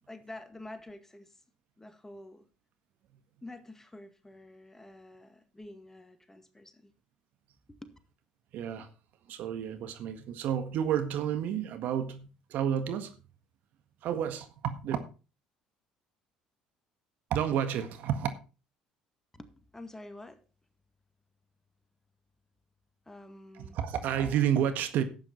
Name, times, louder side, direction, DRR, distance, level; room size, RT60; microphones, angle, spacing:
voice 1, 0.1-1.4 1.8-2.5 3.4-6.9 7.8-7.9 19.3-20.4 23.1-23.8, left 2 dB, 10° left, 2.0 m, -48 dB
voice 2, 8.5-8.9 9.3-13.1 14.0-15.0 17.3-18.3 23.6-25.0, right 9 dB, 60° right, 1.7 m, -30 dB
12.0 x 9.1 x 4.5 m
hypercardioid pair, 60°, 3 cm